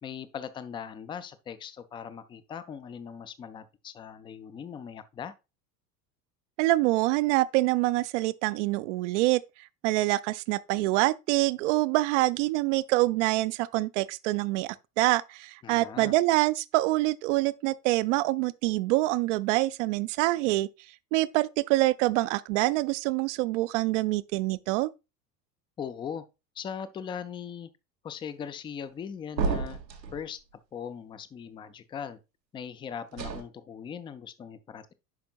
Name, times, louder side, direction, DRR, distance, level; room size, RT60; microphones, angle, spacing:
voice 1, 0.0-5.3 15.6-16.1 25.8-26.2 26.6-27.7 28.0-29.8 30.1-30.4 30.7-32.2 32.5-34.9, left 7 dB, 10° left, 0.4 m, -39 dB
voice 2, 6.6-9.4 9.8-20.7 21.1-24.9, right 19 dB, 50° right, 0.5 m, -25 dB
sound 1, 29.4-30.2 33.1-33.4, right 5 dB, 80° right, 1.2 m, -30 dB
10.5 x 5.1 x 2.4 m
figure-of-eight pair, 70°, 49 cm